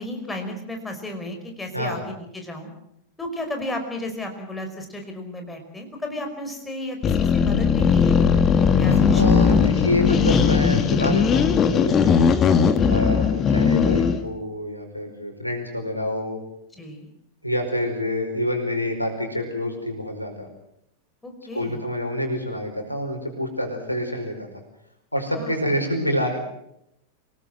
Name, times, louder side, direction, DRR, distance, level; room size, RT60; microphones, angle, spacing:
voice 1, 0.0-2.7 3.2-8.1 8.8-9.6 12.7-13.0 16.7-17.1 21.2-21.8 25.3-25.5, left 1 dB, 10° left, 4 dB, 5.2 m, -34 dB
sound 1, 7.0-14.2, left 6 dB, 25° left, 2.1 m, -18 dB
voice 2, 8.9-12.0 12.9-16.4 17.4-20.5 21.5-24.5 25.1-26.4, left 1 dB, 85° left, 4 dB, 4.9 m, -27 dB
27.5 x 18.5 x 7.8 m, 0.80 s
figure-of-eight pair, 90°, 0 cm